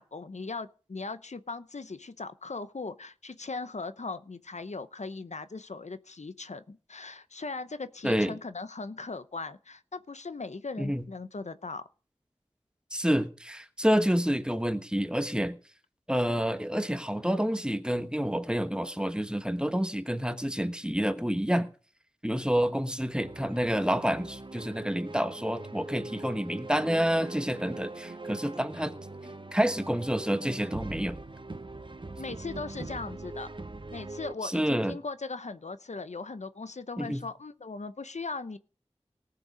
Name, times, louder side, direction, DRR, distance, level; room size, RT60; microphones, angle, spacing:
voice 1, 0.0-11.9 32.2-33.5 33.9-38.6, left 3 dB, 90° left, 0.7 m, -39 dB
voice 2, 12.9-15.6 16.1-21.7 22.2-28.9 29.5-31.2 34.4-35.0 37.0-37.2, equal, 10° right, 1.2 m, -28 dB
sound 1, 23.2-34.3, right 2 dB, 45° right, 0.9 m, -42 dB
18.5 x 6.8 x 5.0 m
wide cardioid pair, 45°, 11 cm